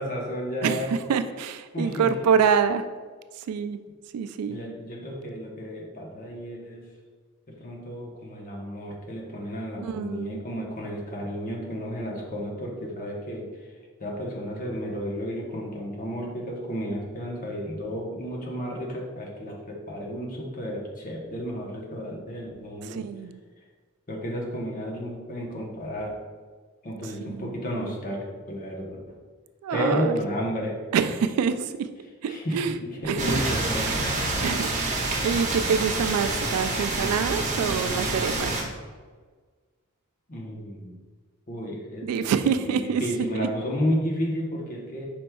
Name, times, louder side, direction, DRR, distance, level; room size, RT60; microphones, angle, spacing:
voice 1, 0.0-1.0 1.7-2.3 4.5-6.8 7.6-13.5 14.0-23.0 24.1-26.1 26.8-29.1 29.7-30.8 32.3-32.6 33.0-34.1 34.5-34.6 40.3-40.9 41.5-42.4 42.7-45.1, equal, 40° left, -2 dB, 0.8 m, -32 dB
voice 2, 0.6-2.8 3.4-3.8 4.1-4.6 9.8-10.4 22.9-23.4 27.2-27.6 29.6-30.2 30.9-31.9 32.2-32.7 33.0-33.4 33.8-34.0 34.4-38.7 42.0-43.0 43.3-43.5, right 6 dB, 90° right, 13 dB, 0.3 m, -26 dB
sound 1, 33.2-38.6, right 2 dB, 35° right, 0.8 m, -27 dB
5.1 x 4.5 x 2.3 m, 1.5 s
head